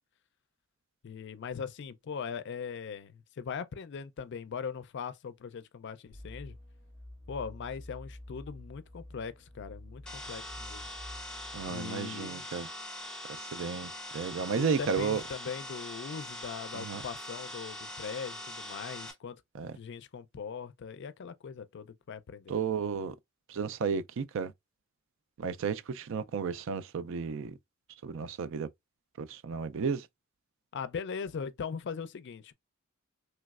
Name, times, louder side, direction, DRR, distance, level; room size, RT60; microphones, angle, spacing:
voice 1, 1.0-6.6 7.3-10.9 11.7-12.5 14.5-19.4 19.8-22.6 30.7-32.5, left 6 dB, 55° left, 0.4 m, -40 dB
sound 1, 6.1-11.7, left 1 dB, 40° right, 1.9 m, -48 dB
sound 2, 10.1-19.1, left 1 dB, 5° left, 0.9 m, -42 dB
voice 2, 11.5-12.7 13.5-15.2 16.7-17.0 19.5-19.7 22.5-23.1 23.5-24.5 25.4-27.5 28.0-28.7 29.2-30.1, right 6 dB, 65° right, 0.4 m, -33 dB
3.3 x 3.0 x 2.3 m
head